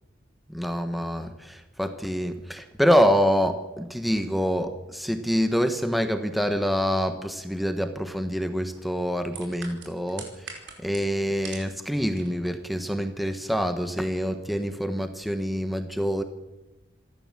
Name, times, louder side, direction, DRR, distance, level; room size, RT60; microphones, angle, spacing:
voice 1, 0.5-16.2, equal, ahead, 8 dB, 1.2 m, -26 dB
sound 1, 9.3-11.8 12.0-12.5 12.9-13.0, right 6 dB, 85° right, 5.2 m, -41 dB
27.5 x 13.0 x 7.5 m, 1.0 s
head